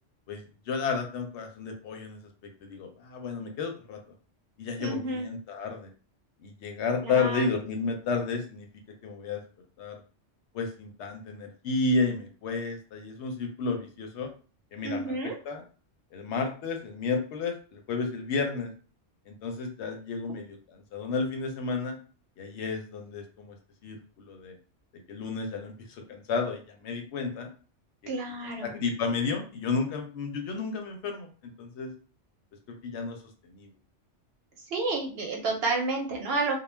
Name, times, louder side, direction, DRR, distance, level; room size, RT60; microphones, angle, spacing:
voice 1, 0.3-2.2 2.6-4.0 4.6-5.9 6.4-8.7 9.0-9.4 9.8-10.0 10.5-14.3 14.7-15.1 15.4-15.6 16.1-18.7 19.3-22.0 22.4-23.6 23.8-24.5 25.1-27.5 28.0-28.1 28.6-31.9 32.7-33.2 33.5-33.7, left 4 dB, 70° left, 4 dB, 0.8 m, -32 dB
voice 2, 4.8-5.3 7.0-7.5 14.8-15.4 28.1-28.7 34.6-36.5, right 3 dB, 60° right, 1 dB, 0.8 m, -30 dB
2.3 x 2.1 x 3.2 m, 0.38 s
omnidirectional pair, 1.2 m